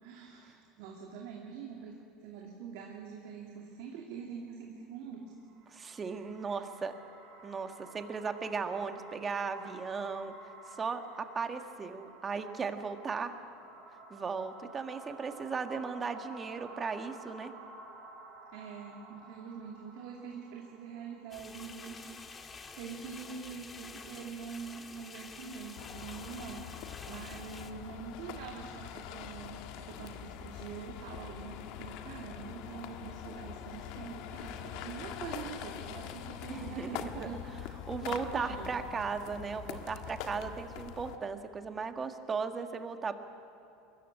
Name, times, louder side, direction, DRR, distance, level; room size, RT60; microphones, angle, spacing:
voice 1, 0.0-5.2 18.5-22.4 22.8-38.8, right 6 dB, 70° right, 0 dB, 2.4 m, -45 dB
sound 1, 5.3-22.5, right 2 dB, 50° right, 6.7 m, -53 dB
voice 2, 5.7-6.9 7.4-10.4 10.7-13.3 14.1-17.5 36.5-37.3 37.9-43.2, right 5 dB, 25° right, 7 dB, 1.7 m, -36 dB
sound 2, 21.3-27.7, left 4 dB, 25° left, 1.7 m, -49 dB
sound 3, 25.8-41.2, left 9 dB, 65° left, 1.5 m, -44 dB
22.5 x 14.0 x 9.9 m, 3.0 s
hypercardioid pair, 95°, 0 cm